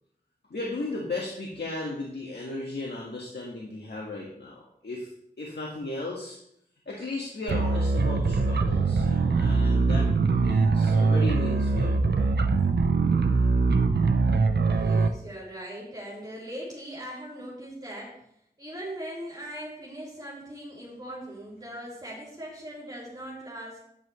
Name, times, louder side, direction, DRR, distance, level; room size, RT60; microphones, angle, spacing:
voice 1, 0.5-5.1 5.4-6.4 6.8-12.3, left 2 dB, 80° left, -2 dB, 1.6 m, -35 dB
sound 1, 7.5-15.1, right 4 dB, 90° right, 0.7 m, -22 dB
voice 2, 14.7-18.1 18.6-23.8, equal, 25° right, -7 dB, 3.8 m, -40 dB
11.0 x 9.3 x 3.2 m, 0.73 s
wide cardioid pair, 50°, 17 cm